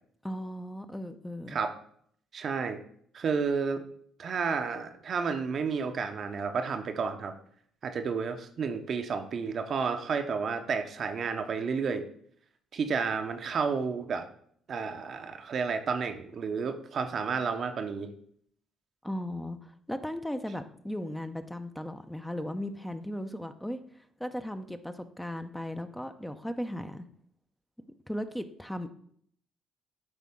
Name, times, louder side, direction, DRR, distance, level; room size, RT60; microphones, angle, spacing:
voice 1, 0.2-1.6 19.0-23.8 24.2-27.0 28.1-28.9, left 1 dB, 5° left, 8 dB, 0.6 m, -36 dB
voice 2, 2.3-2.8 3.1-3.8 4.2-7.3 7.8-12.0 12.7-14.2 14.7-18.1, right 5 dB, 55° right, 6 dB, 0.7 m, -31 dB
9.8 x 3.7 x 3.6 m, 0.64 s
hypercardioid pair, 55°, 0 cm